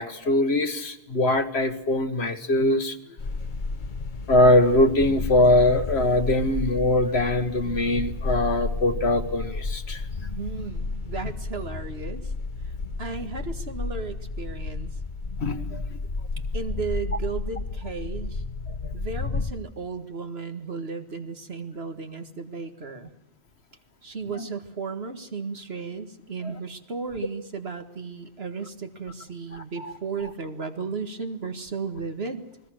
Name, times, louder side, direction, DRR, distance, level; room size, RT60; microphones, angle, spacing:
voice 1, 0.0-3.0 4.3-10.0 15.4-15.8 18.8-18.9, left 1 dB, 70° left, 9 dB, 1.8 m, -22 dB
sound 1, 3.2-19.5, left 3 dB, 45° left, 1.3 m, -32 dB
voice 2, 10.4-12.3 12.6-12.7 13.0-14.9 16.5-18.4 18.9-23.1 24.0-32.4, right 4 dB, 70° right, 7 dB, 2.1 m, -34 dB
29.0 x 20.0 x 6.4 m, 0.88 s
omnidirectional pair, 1.1 m